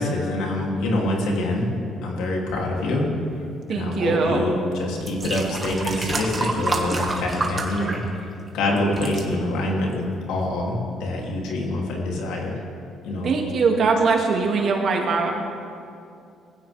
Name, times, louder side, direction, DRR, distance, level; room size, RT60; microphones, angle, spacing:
voice 1, 0.0-1.7 2.0-3.0 3.7-4.5 4.8-10.0 10.3-12.6 13.0-13.3, left 1 dB, 90° left, -2 dB, 3.0 m, -25 dB
voice 2, 3.7-4.4 13.2-15.3, right 4 dB, 55° right, 0 dB, 2.5 m, -21 dB
sound 1, 4.4-4.5 5.0-8.5 8.8-9.2 9.9-10.0, right 3 dB, 25° right, 1.9 m, -28 dB
20.0 x 16.0 x 3.6 m, 2.5 s
cardioid pair, 100°, 0 cm